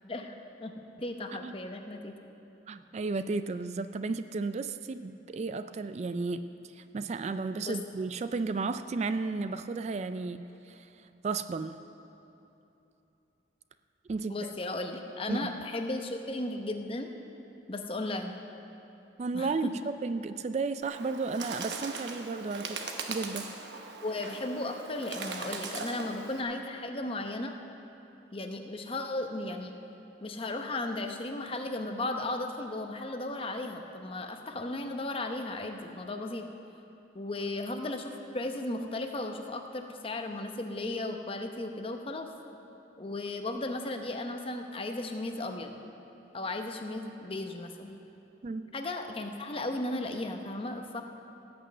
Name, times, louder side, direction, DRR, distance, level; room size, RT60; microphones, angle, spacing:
voice 1, 0.1-2.1 7.6-7.8 14.3-17.1 17.7-18.3 19.3-19.7 24.0-27.5 28.3-29.7 30.2-36.4 37.1-42.3 43.0-45.8 46.3-48.0 48.7-51.0, left 2 dB, 30° left, 5 dB, 0.8 m, -35 dB
voice 2, 2.7-6.4 6.7-10.9 11.2-11.8 14.1-14.5 15.3-15.5 19.2-23.6 48.4-48.7, right 4 dB, 40° right, 11 dB, 0.3 m, -33 dB
Bird, 20.8-26.4, right 4 dB, 80° right, 1.0 m, -40 dB
17.0 x 6.2 x 7.6 m, 2.9 s
head